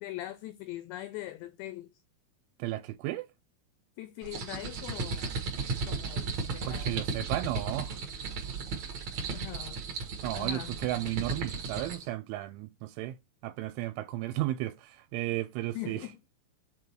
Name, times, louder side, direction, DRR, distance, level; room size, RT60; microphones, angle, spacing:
voice 1, 0.0-1.9 4.0-5.4 5.9-7.0 9.3-9.8 10.3-10.7 15.8-16.2, left 15 dB, 85° left, 2.5 m, -41 dB
voice 2, 2.6-3.3 6.4-7.9 10.2-13.2 13.4-16.1, right 15 dB, 85° right, 3.0 m, -34 dB
sound 1, 4.2-12.1, right 4 dB, 55° right, 1.9 m, -35 dB
7.8 x 3.9 x 4.5 m
omnidirectional pair, 5.6 m